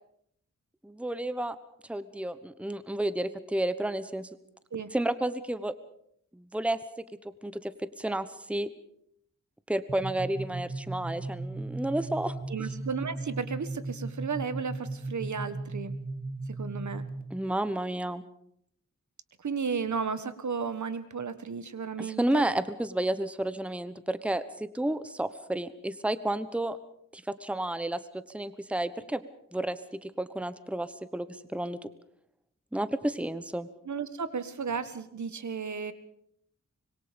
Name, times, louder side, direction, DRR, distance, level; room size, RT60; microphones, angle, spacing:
voice 1, 0.8-1.6 1.9-4.3 4.9-5.7 6.3-6.8 7.4-8.7 9.7-12.7 17.3-18.2 22.0-26.8 27.1-29.2 29.5-31.8 32.7-33.7, right 1 dB, 5° right, 13 dB, 1.1 m, -31 dB
sound 1, 9.9-17.4, right 2 dB, 25° right, 2.3 m, -37 dB
voice 2, 12.5-15.9 16.6-17.0 19.4-22.4 33.8-35.9, right 5 dB, 65° right, 12 dB, 1.5 m, -34 dB
25.0 x 22.0 x 5.2 m, 0.71 s
wide cardioid pair, 80°, 31 cm